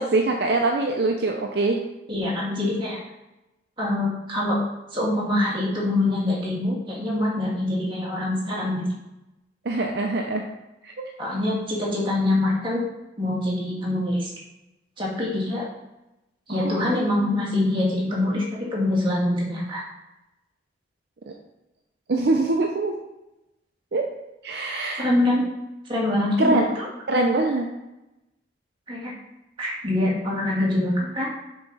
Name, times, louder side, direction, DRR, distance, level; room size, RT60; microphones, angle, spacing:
voice 1, 0.0-1.8 9.6-10.4 10.8-10.9 16.5-17.0 21.3-21.4 22.1-22.9 23.9-24.0 24.4-25.1 26.4-26.6 27.1-27.7, right 2 dB, 55° right, 2 dB, 0.5 m, -23 dB
voice 2, 2.1-3.0 3.8-4.6 4.9-8.9 11.2-12.8 13.2-14.3 15.0-15.6 16.5-19.8 24.9-25.5 25.9-26.9 28.9-29.1 29.6-31.3, left 1 dB, 25° right, -5 dB, 1.9 m, -24 dB
6.8 x 4.6 x 4.1 m, 0.96 s
head